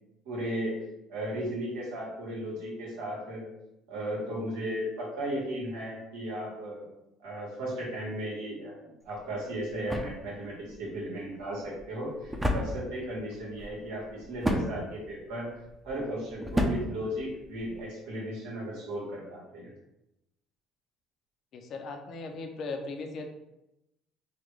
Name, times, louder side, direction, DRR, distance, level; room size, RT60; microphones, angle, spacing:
voice 1, 0.2-0.7 1.1-3.5 3.9-6.9 7.2-15.5 15.8-19.7, right 1 dB, 90° right, -4 dB, 1.3 m, -35 dB
sound 1, 9.0-17.9, equal, 15° right, 0.6 m, -34 dB
voice 2, 21.5-23.3, left 3 dB, 60° left, 5 dB, 0.6 m, -38 dB
3.9 x 2.2 x 3.2 m, 0.90 s
supercardioid pair, 75°, 0 cm